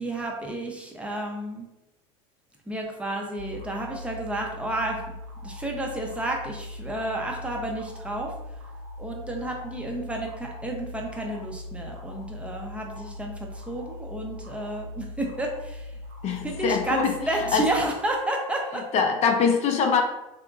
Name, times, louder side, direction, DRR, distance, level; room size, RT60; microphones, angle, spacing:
voice 1, 0.0-1.7 2.7-5.0 5.4-8.3 9.0-16.0 16.4-18.8, right 1 dB, 5° right, 0 dB, 0.6 m, -31 dB
sound 1, 3.4-17.9, left 1 dB, 65° right, 0.9 m, -40 dB
voice 2, 16.2-17.1 17.5-17.6 18.9-20.0, left 6 dB, 40° left, 4 dB, 0.5 m, -23 dB
2.8 x 2.5 x 2.4 m, 0.92 s
hypercardioid pair, 95°, 17 cm